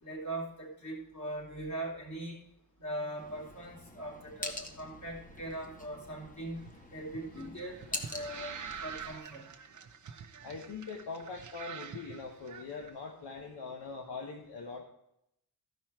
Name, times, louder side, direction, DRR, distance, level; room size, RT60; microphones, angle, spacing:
voice 1, 0.0-2.4 2.8-6.6 6.9-9.4, right 1 dB, 45° left, -3 dB, 3.4 m, -40 dB
sound 1, 3.2-9.2, left 1 dB, 20° left, 1.0 m, -45 dB
sound 2, 6.6-12.9, right 7 dB, 45° right, 0.8 m, -46 dB
voice 2, 10.4-14.8, left 4 dB, 75° left, 0 dB, 1.2 m, -42 dB
13.5 x 5.6 x 4.4 m, 0.78 s
wide cardioid pair, 140°, 41 cm